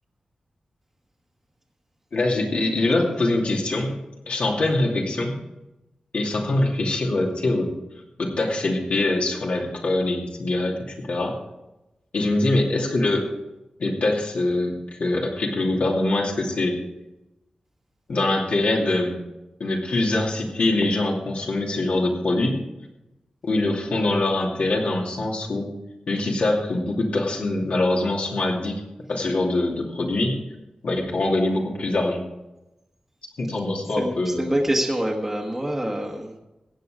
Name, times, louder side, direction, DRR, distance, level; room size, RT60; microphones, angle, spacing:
voice 1, 2.1-3.9 4.3-5.3 6.1-7.7 8.2-11.4 12.1-13.3 13.8-16.8 18.1-19.2 19.6-22.6 23.4-25.7 26.1-28.8 29.1-30.4 30.8-32.2 33.4-34.5, left 2 dB, 70° left, 0 dB, 2.6 m, -23 dB
voice 2, 34.0-36.4, right 1 dB, 15° right, -1 dB, 1.3 m, -26 dB
15.5 x 8.9 x 4.9 m, 0.96 s
wide cardioid pair, 145°, 2 cm